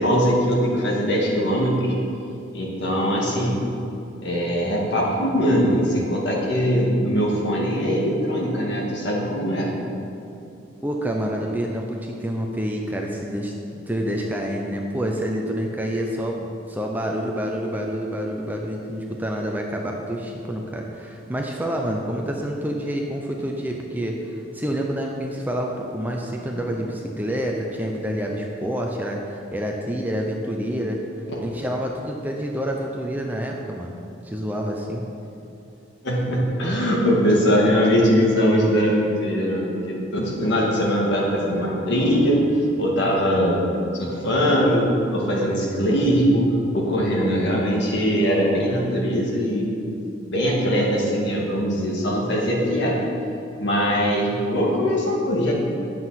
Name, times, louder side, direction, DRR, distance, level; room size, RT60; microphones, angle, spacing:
voice 1, 0.0-1.9 2.5-3.6 4.2-9.7 36.0-42.4 42.8-43.6 43.9-46.5 46.7-49.7 50.3-53.0 53.6-55.5, equal, 55° left, -3 dB, 2.2 m, -21 dB
voice 2, 10.8-31.0 31.4-34.0 34.2-35.1, equal, 10° right, 0 dB, 0.7 m, -28 dB
10.0 x 7.7 x 5.9 m, 2.7 s
head